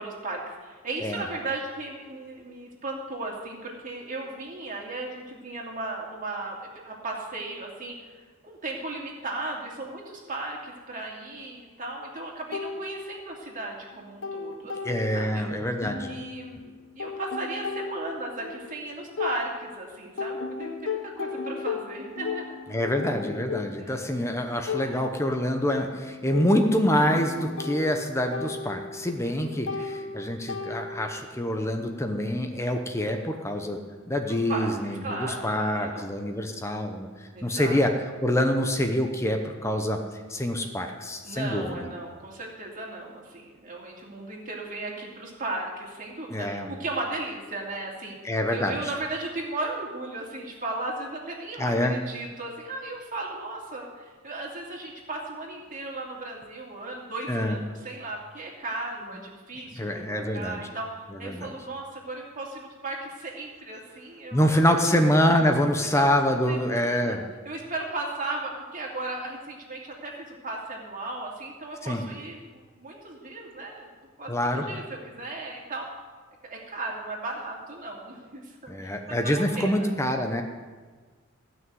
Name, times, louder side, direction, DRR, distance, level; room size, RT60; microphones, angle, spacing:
voice 1, 0.0-8.0 8.4-15.4 16.1-22.6 23.8-24.3 24.8-25.1 29.2-30.1 34.3-34.7 35.0-36.1 37.3-37.8 41.2-60.9 61.2-65.0 65.8-66.1 66.5-67.2 67.4-73.9 74.2-76.0 76.4-78.7 79.1-79.9, right 2 dB, 35° right, -2 dB, 2.7 m, -36 dB
sound 1, 12.5-13.6 13.9-15.5 15.8-19.8 20.2-31.2, left 4 dB, 60° left, 0.9 m, -36 dB
voice 2, 14.8-16.1 22.7-33.8 34.1-37.9 38.2-40.0 40.3-41.9 46.3-46.7 48.2-48.7 51.6-52.0 57.3-57.6 59.8-60.7 61.2-61.5 64.3-67.2 71.8-72.0 74.3-74.7 78.7-80.4, equal, 15° left, 4 dB, 0.8 m, -26 dB
16.0 x 6.2 x 9.3 m, 1.5 s
head